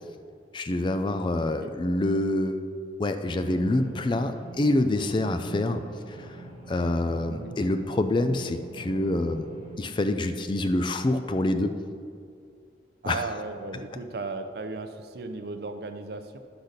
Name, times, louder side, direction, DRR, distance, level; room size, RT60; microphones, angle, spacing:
voice 1, 0.5-2.6 3.0-6.4 6.7-9.5 9.8-11.8 13.1-13.2, left 1 dB, 25° left, 8 dB, 0.3 m, -26 dB
sound 1, 3.4-9.8, right 3 dB, 25° right, 1.3 m, -44 dB
voice 2, 13.0-16.4, right 3 dB, 60° right, 8 dB, 0.5 m, -36 dB
10.0 x 4.0 x 6.5 m, 2.3 s
head